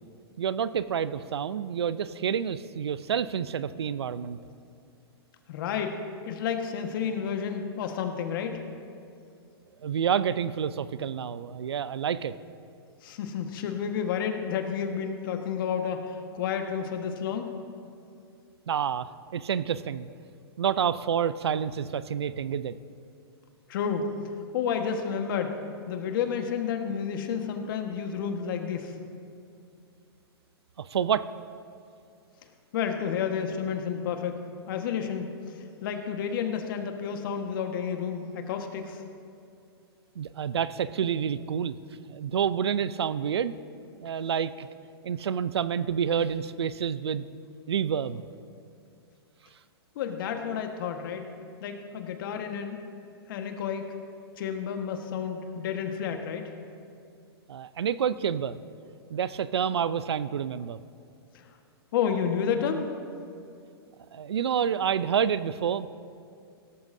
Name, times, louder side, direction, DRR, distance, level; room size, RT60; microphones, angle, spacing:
voice 1, 0.4-4.4 9.8-12.3 18.7-20.1 20.6-22.8 30.8-31.3 40.2-41.8 42.1-43.5 44.0-44.7 45.0-47.2 47.7-48.2 57.5-58.6 59.1-60.8 64.1-65.9, right 8 dB, 85° right, 15 dB, 0.5 m, -28 dB
voice 2, 5.5-6.0 6.2-8.6 13.0-17.5 23.7-24.1 24.5-25.6 25.9-29.0 32.7-35.3 35.8-39.0 49.9-51.3 51.6-52.8 53.3-53.9 54.4-56.5 61.3-61.5 61.9-62.8, left 7 dB, 55° left, 5 dB, 1.4 m, -30 dB
16.5 x 13.5 x 2.7 m, 2.5 s
hypercardioid pair, 130°, 13 cm